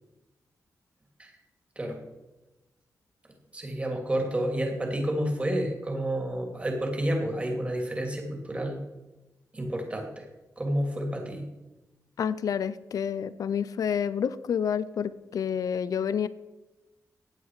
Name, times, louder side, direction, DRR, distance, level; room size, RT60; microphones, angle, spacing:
voice 1, 3.5-8.8 9.5-10.3 10.6-11.5, right 1 dB, 20° right, 2 dB, 2.8 m, -30 dB
voice 2, 12.2-16.3, left 7 dB, 70° left, 16 dB, 0.5 m, -29 dB
15.5 x 10.0 x 4.8 m, 1.1 s
wide cardioid pair, 155°, 6 cm